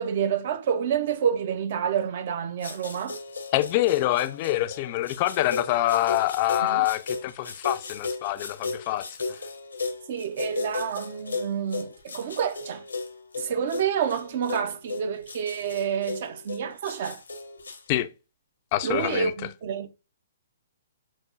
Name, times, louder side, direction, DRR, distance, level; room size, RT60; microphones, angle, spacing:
voice 1, 0.0-3.2 6.6-6.9 10.1-12.8 13.4-17.2 18.8-19.9, right 7 dB, 50° right, 0.5 m, -28 dB
sound 1, 2.6-17.8, left 4 dB, 85° left, 0.7 m, -36 dB
voice 2, 3.5-9.4 17.9-18.1 18.7-19.3, left 15 dB, 40° left, 0.3 m, -25 dB
4.9 x 2.1 x 2.4 m
figure-of-eight pair, 130°, 0 cm